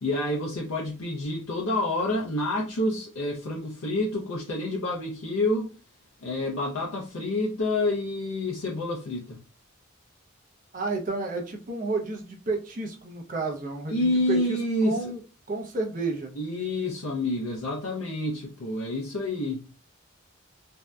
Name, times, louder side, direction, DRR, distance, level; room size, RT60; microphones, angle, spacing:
voice 1, 0.0-5.7 6.2-9.4 13.9-15.0 16.4-19.7, left 1 dB, 90° left, 0.5 m, -28 dB
voice 2, 10.7-15.2 15.5-16.3, right 3 dB, 40° right, 0.5 m, -31 dB
2.6 x 2.2 x 2.2 m
head